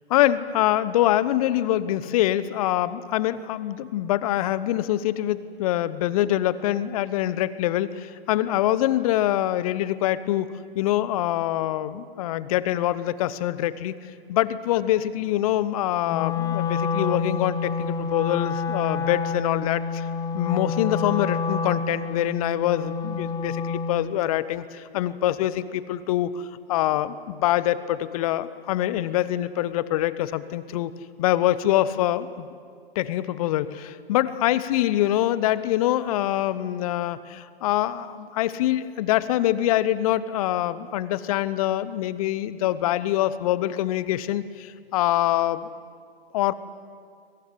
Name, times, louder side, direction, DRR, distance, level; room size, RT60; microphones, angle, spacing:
voice 1, 0.1-13.9 14.3-20.1 20.3-30.9 31.2-32.5 32.9-45.7 46.3-46.5, left 13 dB, 35° left, 16 dB, 1.0 m, -24 dB
Wind instrument woodwind instrument, 16.1-24.1, left 5 dB, 10° left, 0.8 m, -28 dB
22.5 x 20.0 x 10.0 m, 2.1 s
figure-of-eight pair, 125°, 31 cm